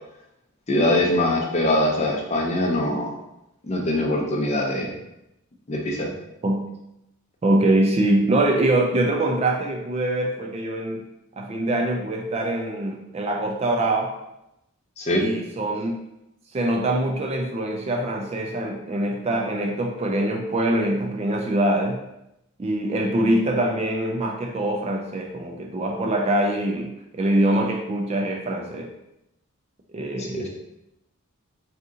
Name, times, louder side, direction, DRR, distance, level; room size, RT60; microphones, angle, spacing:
voice 1, 0.7-3.1 3.6-4.9 5.7-6.1 15.0-15.3 30.2-30.5, left 1 dB, 30° left, 0 dB, 0.5 m, -23 dB
voice 2, 7.4-11.0 11.4-14.1 15.2-15.9 16.5-22.0 22.6-28.9 29.9-30.5, right 1 dB, 30° right, 1 dB, 0.3 m, -23 dB
2.8 x 2.5 x 3.6 m, 0.86 s
head